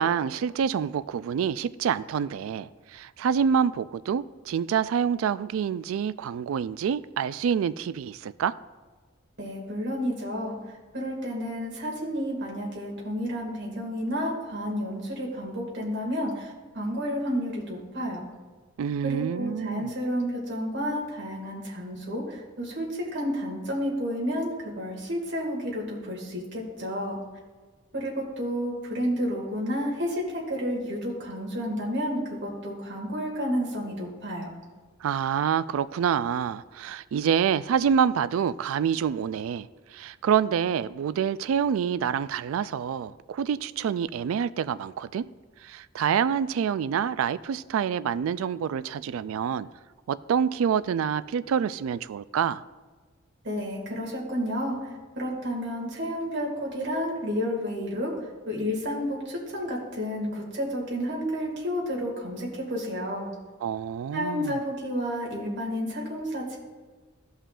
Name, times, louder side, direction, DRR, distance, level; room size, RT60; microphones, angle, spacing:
voice 1, 0.0-8.5 18.8-19.9 35.0-45.3 45.6-49.7 50.1-52.6 63.6-64.6, right 7 dB, 85° right, 0.3 m, -27 dB
voice 2, 9.4-10.6 10.9-18.3 19.0-27.2 27.9-34.5 53.4-54.8 55.2-58.1 58.5-63.3 64.1-66.6, equal, 60° right, 2.1 m, -31 dB
15.0 x 5.6 x 2.5 m
head